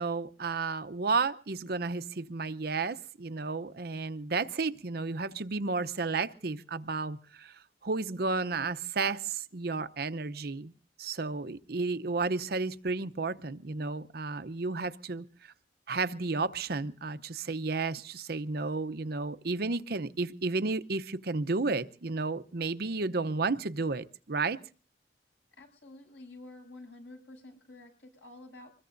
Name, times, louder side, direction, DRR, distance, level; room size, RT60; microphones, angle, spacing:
voice 1, 0.0-7.5 7.8-10.7 11.0-15.2 15.9-24.6, right 3 dB, 60° right, 0.7 m, -32 dB
voice 2, 25.6-28.7, left 2 dB, 85° left, 7.4 m, -50 dB
25.0 x 21.0 x 2.6 m
head